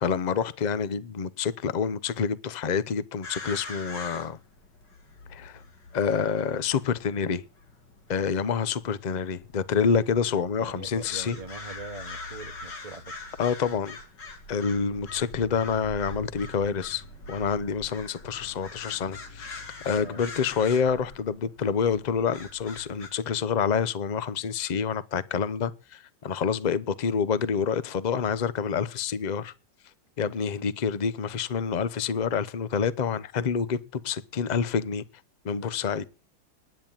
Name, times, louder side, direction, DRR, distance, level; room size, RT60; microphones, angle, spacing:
voice 1, 0.0-4.4 5.3-5.6 5.9-7.4 8.1-11.4 13.4-14.0 14.5-29.5 30.2-35.0 35.4-36.0, left 6 dB, 45° left, 0.6 m, -27 dB
sound 1, 3.2-23.1, left 3 dB, 85° left, 3.0 m, -43 dB
voice 2, 10.6-13.1 19.9-20.2, right 3 dB, 25° right, 1.1 m, -42 dB
10.0 x 9.5 x 9.0 m
omnidirectional pair, 1.9 m